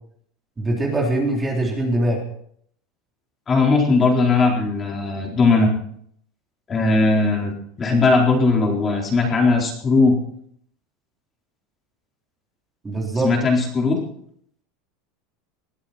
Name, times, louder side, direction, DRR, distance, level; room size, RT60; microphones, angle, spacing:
voice 1, 0.6-2.2 12.8-13.4, right 1 dB, 15° right, -1 dB, 3.6 m, -22 dB
voice 2, 3.5-5.7 6.7-7.5 7.8-10.1 13.2-14.0, left 3 dB, 20° left, 0 dB, 4.4 m, -18 dB
21.0 x 13.0 x 4.4 m, 0.66 s
supercardioid pair, 150°, 0 cm